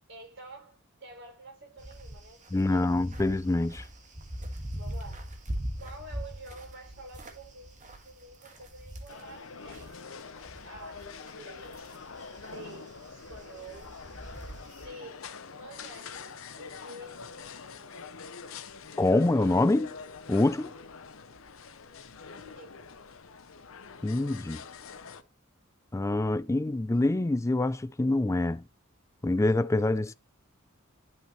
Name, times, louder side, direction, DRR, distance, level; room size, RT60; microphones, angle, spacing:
voice 1, 0.1-3.0 4.7-5.4 5.8-10.2 10.6-11.9 12.4-14.0 14.8-18.0 22.3-22.9, right 2 dB, 60° right, 6.0 m, -49 dB
sound 1, 1.8-10.0 10.3-14.9, equal, 35° right, 1.9 m, -42 dB
voice 2, 2.5-3.8 19.0-19.9 20.3-20.7 24.0-24.6 25.9-28.6 29.2-30.1, left 2 dB, 15° left, 0.4 m, -25 dB
sound 2, 9.1-25.2, left 5 dB, 70° left, 0.8 m, -45 dB
11.5 x 5.7 x 3.1 m
head